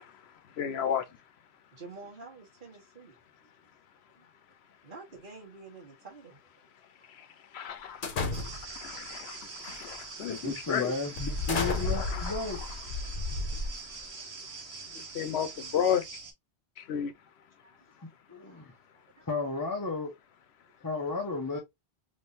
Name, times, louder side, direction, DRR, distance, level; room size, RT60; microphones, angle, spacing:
voice 1, 0.0-1.8 3.5-4.9 6.6-16.1 16.8-19.3 20.6-20.9, left 8 dB, 80° left, 0.9 m, -37 dB
voice 2, 1.7-3.2 4.1-4.3 4.8-6.7 8.6-9.0 13.8-14.2 14.5-14.6 17.6-17.8 18.4-18.6 18.9-19.3, right 4 dB, 50° right, 1.5 m, -50 dB
sound 1, 8.0-8.8 9.6-9.9 10.4-10.5 11.2-14.1, left 3 dB, 55° left, 1.0 m, -33 dB
sound 2, 8.3-16.3, right 4 dB, 75° right, 1.3 m, -44 dB
voice 3, 10.3-12.6 18.0-18.7 19.3-20.1 20.8-21.6, left 3 dB, 25° left, 0.5 m, -33 dB
3.5 x 3.1 x 2.5 m
omnidirectional pair, 1.1 m